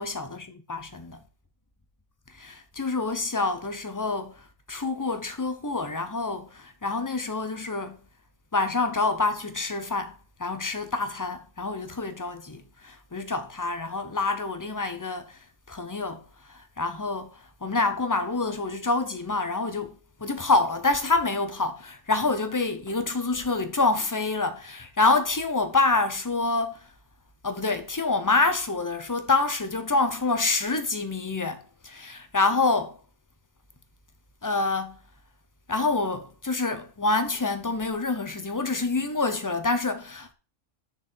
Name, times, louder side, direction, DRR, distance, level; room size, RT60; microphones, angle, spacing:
voice 1, 0.0-1.2 2.3-4.4 4.7-8.0 8.5-10.1 10.4-15.4 15.7-16.2 16.5-26.8 27.4-33.0 34.4-35.0 35.7-40.3, left 3 dB, 20° left, 0.7 m, -27 dB
6.6 x 6.3 x 4.4 m
omnidirectional pair, 1.3 m